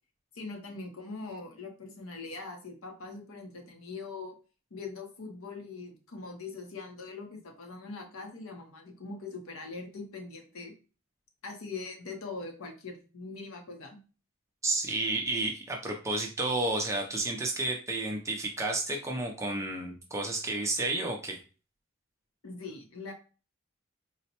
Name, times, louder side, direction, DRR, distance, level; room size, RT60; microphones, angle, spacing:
voice 1, 0.3-4.4 4.7-10.7 11.4-14.0 22.4-23.1, left 3 dB, 70° left, 3 dB, 0.8 m, -42 dB
voice 2, 14.6-21.4, right 2 dB, 15° right, 2 dB, 0.4 m, -31 dB
3.9 x 2.1 x 2.8 m, 0.35 s
head